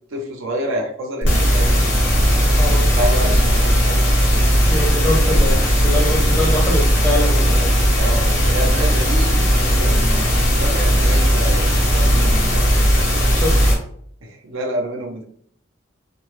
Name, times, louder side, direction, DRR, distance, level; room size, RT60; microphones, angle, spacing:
voice 1, 0.1-1.8 2.6-4.0 8.0-12.7 14.2-15.2, right 1 dB, 80° right, 1 dB, 0.6 m, -28 dB
sound 1, 1.2-13.8, equal, 65° left, 0.7 m, -16 dB
voice 2, 2.6-2.9 4.7-7.8 13.3-13.7, left 1 dB, 10° left, -3 dB, 0.5 m, -24 dB
2.1 x 2.0 x 3.0 m, 0.64 s
head